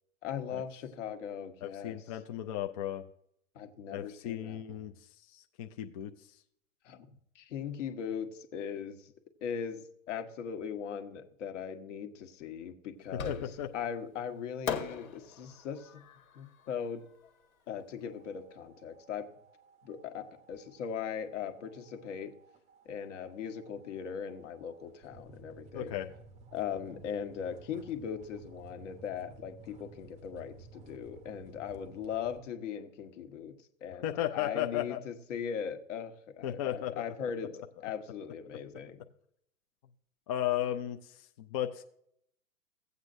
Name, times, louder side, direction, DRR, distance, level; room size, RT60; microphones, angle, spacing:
voice 1, 0.2-2.0 3.5-4.8 6.8-9.1 9.4-13.5 13.7-16.0 16.3-17.0 17.7-19.3 19.8-22.4 22.8-26.0 26.5-33.5 33.8-39.0, left 7 dB, 55° left, 7 dB, 1.3 m, -39 dB
voice 2, 1.6-3.0 3.9-6.4 13.3-13.7 25.7-26.1 34.0-35.0 36.4-37.0 40.3-41.8, left 12 dB, 30° left, 5 dB, 0.4 m, -35 dB
Fireworks, 13.2-13.8 14.7-17.8, left 6 dB, 80° left, 1.7 m, -40 dB
sound 1, 18.0-32.4, right 4 dB, 15° right, 0.6 m, -56 dB
16.0 x 8.0 x 2.6 m, 0.71 s
hypercardioid pair, 120°, 43 cm